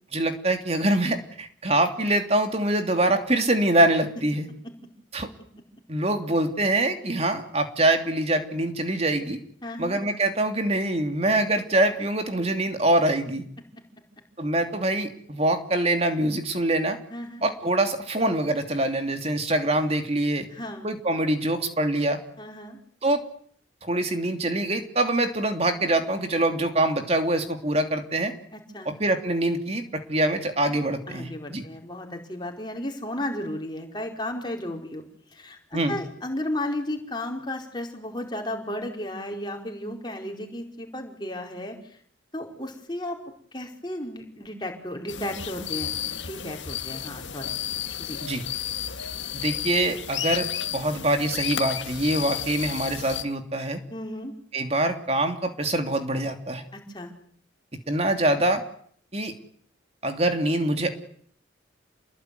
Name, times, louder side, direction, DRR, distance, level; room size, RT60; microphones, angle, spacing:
voice 1, 0.1-4.5 5.1-5.3 5.9-9.4 9.8-13.4 14.4-17.0 17.4-20.5 20.8-22.2 23.0-23.2 23.8-28.3 28.8-31.6 35.7-36.0 48.2-48.4 49.3-50.5 50.7-53.8 54.5-56.6 57.9-58.6 59.1-59.3 60.0-61.0, right 1 dB, 30° right, 6 dB, 2.9 m, -24 dB
voice 2, 9.6-10.0 17.1-17.4 20.5-20.9 22.4-22.8 28.5-28.9 31.1-35.0 35.3-42.0 42.3-43.2 43.5-47.5 48.0-48.2 53.9-54.3 56.7-57.1, left 1 dB, 25° left, 2 dB, 4.8 m, -34 dB
sound 1, 45.1-53.2, left 10 dB, 75° left, 1.8 m, -32 dB
28.5 x 21.0 x 9.6 m, 0.62 s
head